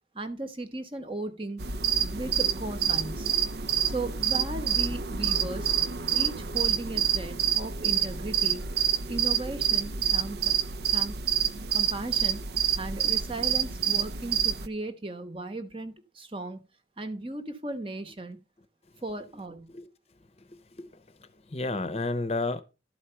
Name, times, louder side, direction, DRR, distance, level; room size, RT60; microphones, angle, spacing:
voice 1, 0.1-1.6 2.1-3.3 3.8-5.7 6.1-8.6 9.1-10.5 10.9-11.2 11.7-12.4 12.8-16.6 17.0-18.4 19.0-19.7, right 2 dB, 30° right, 1.0 m, -36 dB
sound 1, 1.6-14.7, right 9 dB, 65° right, 0.6 m, -27 dB
voice 2, 20.4-22.6, left 2 dB, 35° left, 0.7 m, -33 dB
12.0 x 4.8 x 5.6 m
head